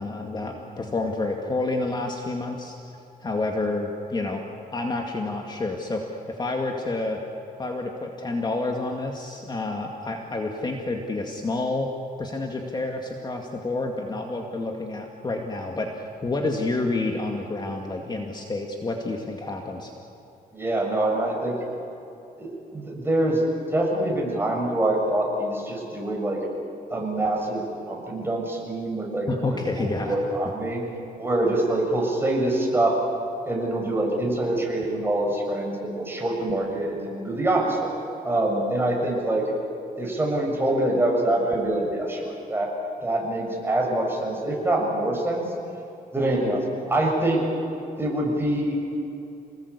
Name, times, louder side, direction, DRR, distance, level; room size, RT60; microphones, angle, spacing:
voice 1, 0.0-2.8 3.2-4.4 4.7-7.2 7.6-11.9 12.2-19.9 29.3-30.2, left 2 dB, 30° left, 1 dB, 2.2 m, -29 dB
voice 2, 20.5-21.6 22.4-23.4 23.7-26.4 26.9-30.8 31.2-33.0 33.4-37.9 38.2-39.5 40.0-42.7 43.0-45.5 46.1-47.5 48.0-48.8, right 1 dB, 15° right, -1 dB, 6.9 m, -25 dB
28.0 x 19.5 x 8.5 m, 2.8 s
cardioid pair, 115°, 16 cm